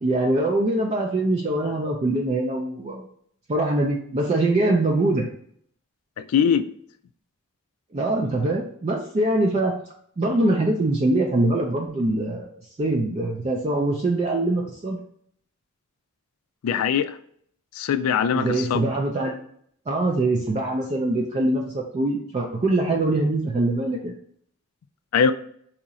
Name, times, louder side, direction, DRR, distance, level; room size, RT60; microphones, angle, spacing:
voice 1, 0.0-3.1 3.5-5.3 7.9-9.7 10.2-12.5 12.8-15.0 18.3-19.4 19.9-24.1, right 2 dB, 30° right, 0 dB, 0.3 m, -23 dB
voice 2, 6.3-6.6 16.6-17.1 17.8-18.8 25.1-25.3, left 7 dB, 85° left, 10 dB, 0.3 m, -21 dB
2.8 x 2.5 x 4.0 m, 0.63 s
head